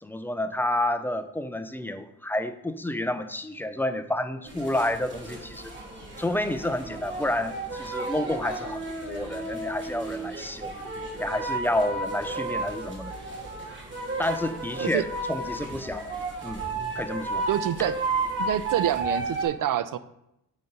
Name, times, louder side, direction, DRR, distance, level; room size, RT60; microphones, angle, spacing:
voice 1, 0.0-5.7 6.2-10.7 11.2-13.1 14.2-15.0 15.3-16.1 16.4-16.6 17.0-17.5, left 1 dB, 5° left, 10 dB, 0.4 m, -29 dB
sound 1, 4.5-19.5, right 3 dB, 30° right, 2.3 m, -33 dB
voice 2, 17.5-18.0 18.4-20.0, right 11 dB, 55° right, 14 dB, 0.6 m, -27 dB
8.6 x 4.0 x 5.3 m, 0.83 s
cardioid pair, 105°, 38 cm